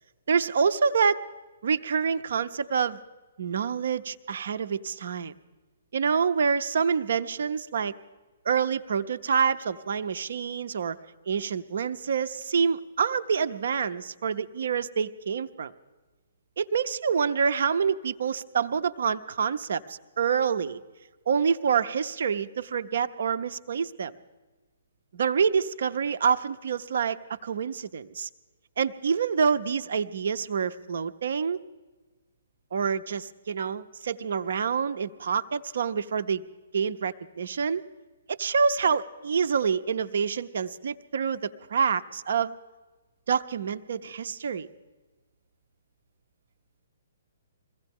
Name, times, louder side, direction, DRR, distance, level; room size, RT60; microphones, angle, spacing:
voice 1, 0.3-1.2 1.6-3.0 3.4-5.3 5.9-7.9 8.5-11.0 11.3-15.7 16.6-20.8 21.3-24.1 25.1-28.3 28.8-31.6 32.7-36.4 36.7-37.8 38.3-42.5 43.3-44.7, right 6 dB, 60° right, 12 dB, 0.7 m, -27 dB
22.5 x 16.0 x 3.6 m, 1.2 s
figure-of-eight pair, 125°, 0 cm